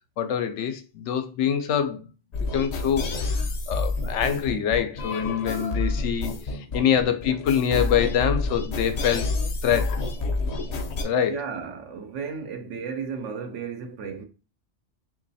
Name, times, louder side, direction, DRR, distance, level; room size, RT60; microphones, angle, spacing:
voice 1, 0.2-2.0 2.5-6.3 6.7-9.3 9.6-10.0 11.0-11.4, left 8 dB, 85° left, 0.9 m, -25 dB
sound 1, 2.3-11.0, left 3 dB, 55° left, 0.4 m, -29 dB
voice 2, 11.2-14.3, right 6 dB, 85° right, 1.1 m, -34 dB
3.0 x 2.6 x 4.0 m
omnidirectional pair, 1.2 m